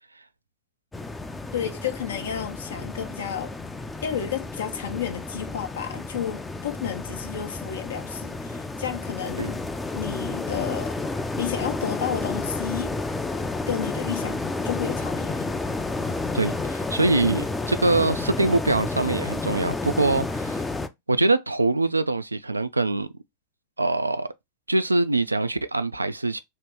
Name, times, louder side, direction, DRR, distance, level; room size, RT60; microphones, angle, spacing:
sound 1, 0.9-20.9, left 3 dB, 10° left, 0.4 m, -31 dB
voice 1, 1.5-3.5 4.0-9.6 9.9-11.0 11.4-13.0 13.7-15.5, left 9 dB, 65° left, 0.6 m, -31 dB
voice 2, 16.3-20.6 21.1-23.1 23.8-24.3 24.7-26.4, right 2 dB, 80° right, 0.3 m, -23 dB
3.0 x 2.9 x 3.3 m
figure-of-eight pair, 90°, 0 cm